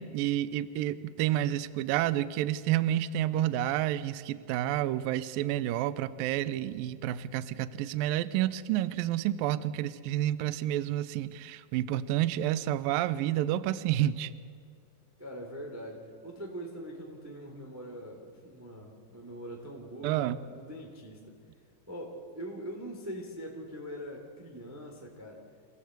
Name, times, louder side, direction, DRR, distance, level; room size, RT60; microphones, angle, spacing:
voice 1, 0.0-14.3 20.0-20.4, right 13 dB, 85° right, 14 dB, 2.0 m, -29 dB
voice 2, 15.2-21.4 21.9-25.4, equal, 5° right, 0 dB, 2.1 m, -42 dB
28.0 x 17.0 x 8.1 m, 2.2 s
omnidirectional pair, 5.0 m